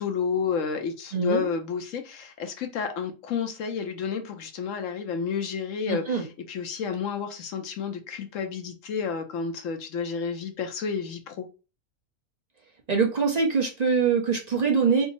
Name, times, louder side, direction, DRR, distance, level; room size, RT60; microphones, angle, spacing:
voice 1, 0.0-11.5, left 6 dB, 70° left, 1.0 m, -31 dB
voice 2, 1.1-1.4 5.9-6.2 12.9-15.1, right 5 dB, 40° right, 0.6 m, -23 dB
3.5 x 2.0 x 3.9 m
omnidirectional pair, 1.5 m